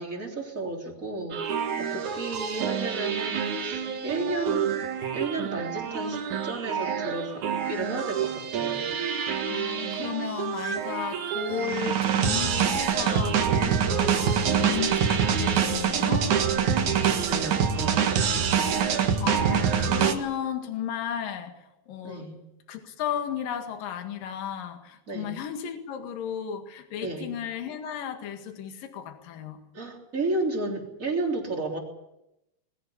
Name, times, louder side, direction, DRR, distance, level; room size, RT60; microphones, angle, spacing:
voice 1, 0.0-4.8 5.1-9.0 14.0-14.4 17.3-18.7 22.0-22.4 25.1-25.4 27.0-27.4 29.7-31.8, right 2 dB, 20° right, 1 dB, 3.5 m, -33 dB
sound 1, 1.3-20.2, right 7 dB, 60° right, 2.7 m, -26 dB
voice 2, 9.5-13.6 13.9-16.4 19.2-21.5 21.9-22.3 22.7-29.6, left 9 dB, 65° left, 7 dB, 3.5 m, -34 dB
21.5 x 15.5 x 9.9 m, 0.89 s
omnidirectional pair, 4.5 m